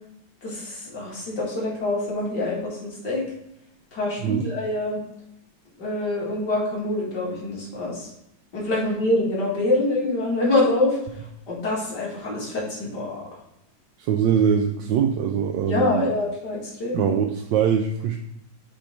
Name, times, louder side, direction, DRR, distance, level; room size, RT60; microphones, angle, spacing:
voice 1, 0.4-3.2 3.9-5.0 5.8-8.1 8.5-11.0 11.5-13.2 15.7-17.1, left 2 dB, 60° left, -5 dB, 2.9 m, -25 dB
voice 2, 14.0-16.1 16.9-18.2, right 7 dB, 75° right, 4 dB, 1.2 m, -22 dB
7.5 x 3.5 x 4.4 m, 0.78 s
omnidirectional pair, 2.2 m